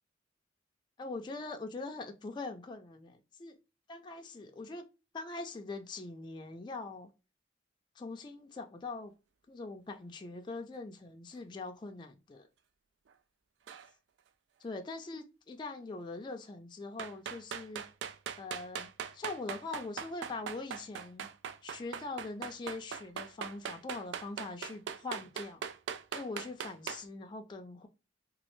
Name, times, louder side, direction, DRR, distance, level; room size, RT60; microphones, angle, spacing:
voice 1, 1.0-3.6 3.9-4.8 5.1-7.1 8.0-9.1 9.5-12.5 14.6-17.8 18.4-21.3 21.6-25.7 26.1-27.9, left 3 dB, 25° left, 0.3 m, -42 dB
sound 1, 13.7-13.9 17.0-27.0, right 7 dB, 65° right, 0.3 m, -40 dB
3.0 x 2.4 x 3.1 m
head